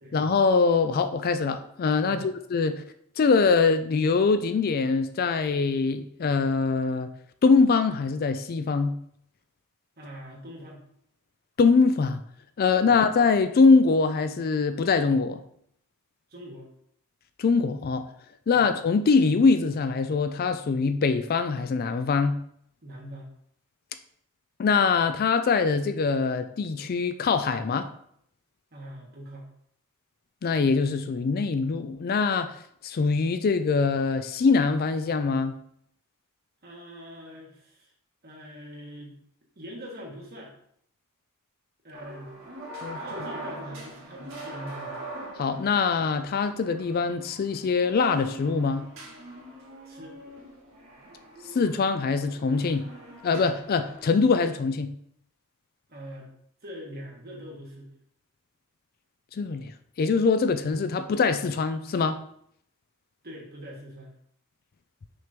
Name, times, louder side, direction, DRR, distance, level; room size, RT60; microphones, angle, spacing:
voice 1, 0.1-2.8 3.2-7.1 7.4-9.0 11.6-12.2 12.6-15.4 17.4-18.1 18.5-22.4 24.6-27.9 30.4-32.6 32.8-35.6 42.8-43.0 45.4-48.9 51.5-52.9 53.2-54.9 59.3-59.7 60.0-62.2, left 4 dB, 45° left, 10 dB, 0.4 m, -23 dB
voice 2, 10.0-10.8 12.8-12.9 16.3-16.7 18.5-18.6 22.8-23.3 28.7-29.5 36.6-37.9 38.2-39.1 39.6-40.5 41.8-42.3 42.9-45.0 49.8-50.2 55.9-56.3 56.6-57.9 63.2-64.1, equal, 45° right, -2 dB, 1.7 m, -42 dB
sound 1, 41.9-54.1, right 1 dB, 65° right, 1.7 m, -43 dB
6.3 x 3.0 x 5.1 m, 0.69 s
head